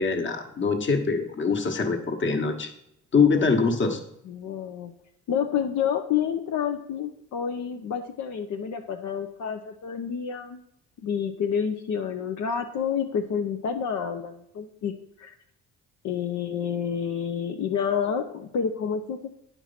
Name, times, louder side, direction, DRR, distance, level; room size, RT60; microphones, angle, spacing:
voice 1, 0.0-2.7 3.1-4.0, left 5 dB, 40° left, 5 dB, 1.4 m, -23 dB
voice 2, 4.3-4.9 5.3-10.6 11.0-14.9 15.2-15.3 16.0-19.3, left 7 dB, 70° left, 4 dB, 0.7 m, -29 dB
9.2 x 4.6 x 5.8 m, 0.74 s
cardioid pair, 90°, 30 cm